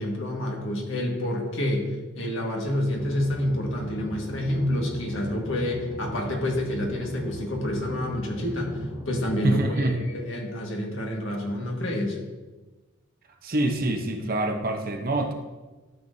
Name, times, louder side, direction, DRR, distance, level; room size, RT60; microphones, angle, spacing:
voice 1, 0.0-8.8 9.0-12.2, left 1 dB, 60° left, 0 dB, 1.7 m, -28 dB
sound 1, 2.9-9.3, equal, 15° right, 2.3 m, -38 dB
voice 2, 9.4-10.0 13.4-15.3, right 2 dB, 45° right, 4 dB, 0.8 m, -25 dB
12.5 x 7.1 x 2.7 m, 1.2 s
head